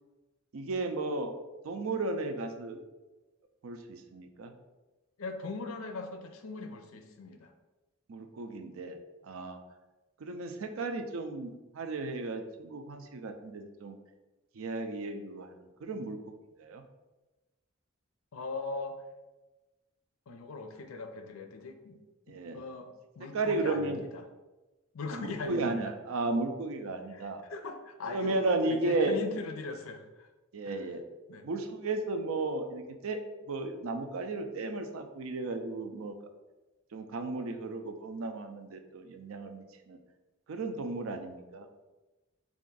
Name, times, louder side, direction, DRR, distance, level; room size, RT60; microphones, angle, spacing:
voice 1, 0.5-1.3 1.6-2.8 3.6-4.5 8.1-9.0 9.2-9.6 10.2-14.0 14.6-15.6 15.8-16.3 16.6-16.8 22.3-22.6 23.3-24.0 25.1-27.4 28.1-29.2 30.5-31.0 31.4-33.2 33.5-36.2 36.9-40.0 40.5-41.7, right 2 dB, 80° right, 6 dB, 0.4 m, -34 dB
voice 2, 5.2-7.5 18.3-19.0 20.3-22.0 22.3-22.9 23.2-24.3 24.9-25.9 27.1-28.4 28.7-30.3 30.7-30.8 31.3-31.5, left 3 dB, 85° left, 7 dB, 0.5 m, -40 dB
3.4 x 2.4 x 3.8 m, 1.1 s
head